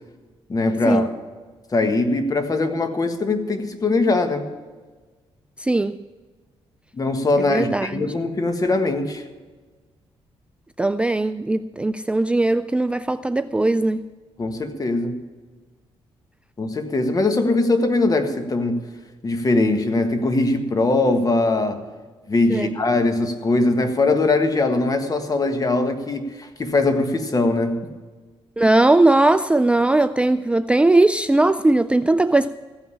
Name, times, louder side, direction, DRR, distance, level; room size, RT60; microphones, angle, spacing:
voice 1, 0.5-1.1 1.7-4.5 6.9-9.2 14.4-15.2 16.6-18.9 19.2-21.8 22.3-27.9, left 2 dB, 35° left, 1.5 m, -21 dB
voice 2, 5.6-6.0 7.5-8.0 10.8-14.1 22.5-22.7 28.6-32.5, right 2 dB, 10° right, 0.3 m, -19 dB
15.0 x 5.6 x 9.8 m
cardioid pair, 85°, 11 cm